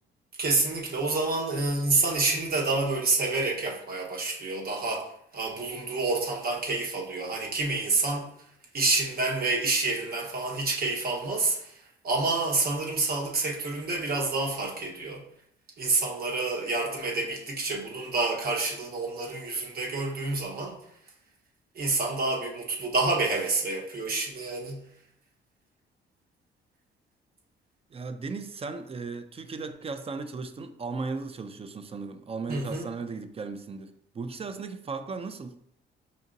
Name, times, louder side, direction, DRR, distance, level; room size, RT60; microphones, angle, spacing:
voice 1, 0.4-5.1 5.3-8.3 8.7-11.7 12.0-15.2 15.8-20.7 21.7-24.8 32.5-32.8, right 3 dB, 50° right, 1.1 m, -28 dB
voice 2, 27.9-35.6, right 4 dB, 30° right, 0.4 m, -36 dB
5.2 x 2.7 x 2.6 m
cardioid pair, 90°, 20 cm